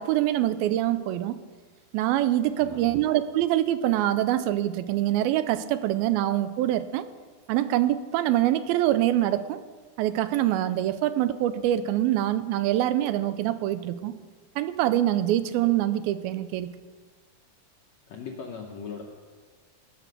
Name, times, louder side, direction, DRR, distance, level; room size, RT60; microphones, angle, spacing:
voice 1, 0.0-1.4 1.9-7.0 7.5-9.6 10.0-14.1 14.6-16.7, right 13 dB, 90° right, 12 dB, 2.5 m, -25 dB
voice 2, 2.5-3.0 18.1-19.0, left 6 dB, 75° left, 1 dB, 1.6 m, -39 dB
17.5 x 6.0 x 6.6 m, 1.5 s
omnidirectional pair, 4.2 m